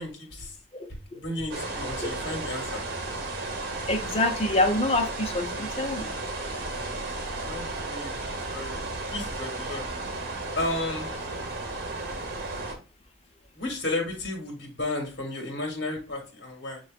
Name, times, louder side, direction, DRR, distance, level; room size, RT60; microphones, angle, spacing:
voice 1, 0.0-0.6 0.9-2.8 5.5-6.3 6.7-8.9 9.1-9.8 10.5-11.1 13.5-16.8, left 2 dB, 65° left, 1.7 m, -34 dB
voice 2, 0.7-1.2 2.0-2.1 3.9-6.1, left 2 dB, 35° left, 0.8 m, -26 dB
sound 1, 1.5-12.7, right 2 dB, 60° right, 1.2 m, -34 dB
6.8 x 3.1 x 2.4 m
head